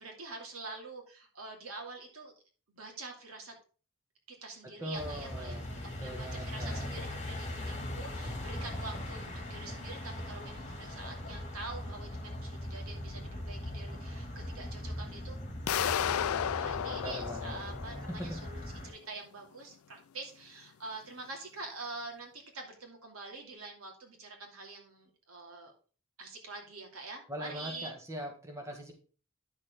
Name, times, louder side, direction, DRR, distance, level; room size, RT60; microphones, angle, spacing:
voice 1, 0.0-2.3 2.7-3.5 4.3-15.4 15.7-25.7 26.2-27.9, right 3 dB, 80° right, 2 dB, 2.7 m, -46 dB
voice 2, 4.8-5.6 6.0-6.9 16.9-17.6 18.1-18.4 27.3-28.9, equal, 15° right, 1 dB, 1.8 m, -41 dB
sound 1, 4.9-18.9, left 1 dB, 35° left, 2.5 m, -40 dB
sound 2, 15.7-18.5, left 9 dB, 80° left, 0.4 m, -33 dB
10.5 x 6.5 x 3.7 m, 0.37 s
head